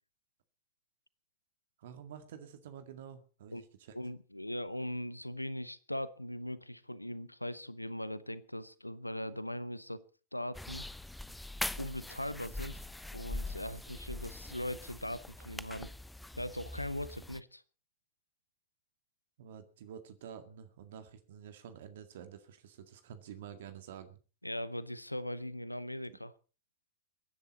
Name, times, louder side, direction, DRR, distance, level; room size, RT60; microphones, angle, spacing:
voice 1, 1.8-4.0 19.4-24.2 26.1-26.2, right 8 dB, 55° right, 1.9 m, -49 dB
voice 2, 3.9-10.0 10.3-10.8 11.8-12.8 13.1-15.9 16.4-17.6 24.4-26.3, left 1 dB, 85° left, 0.8 m, -40 dB
sound 1, 10.5-17.4, left 2 dB, 5° left, 0.7 m, -42 dB
23.0 x 10.5 x 4.2 m
figure-of-eight pair, 90°, 0 cm